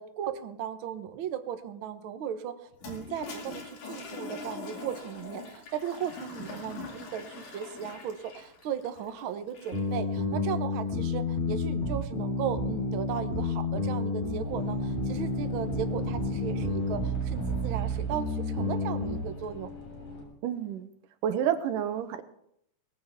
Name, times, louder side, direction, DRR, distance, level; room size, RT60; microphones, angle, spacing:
voice 1, 0.0-2.6 2.8-19.7, right 9 dB, 75° right, 9 dB, 1.2 m, -36 dB
Toilet flush, 2.7-10.0, left 4 dB, 70° left, 3.9 m, -43 dB
sound 1, 9.7-19.2, left 2 dB, 20° left, 3.4 m, -30 dB
sound 2, 14.4-20.2, left 2 dB, 55° left, 4.5 m, -43 dB
voice 2, 20.4-20.9 21.2-22.2, right 9 dB, 90° right, 9 dB, 2.6 m, -29 dB
19.0 x 14.5 x 3.6 m, 0.75 s
omnidirectional pair, 3.7 m